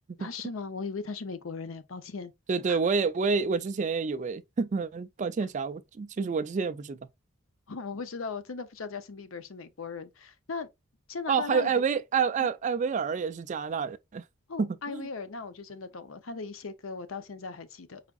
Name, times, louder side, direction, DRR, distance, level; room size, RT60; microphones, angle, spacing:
voice 1, 0.2-2.3 2.7-2.8 7.7-10.7 11.1-11.7 12.4-12.5 14.5-18.0, left 4 dB, 85° left, 0.6 m, -38 dB
voice 2, 2.5-7.0 11.3-14.2 14.6-15.1, right 5 dB, 35° right, 0.3 m, -28 dB
4.9 x 3.5 x 2.3 m
head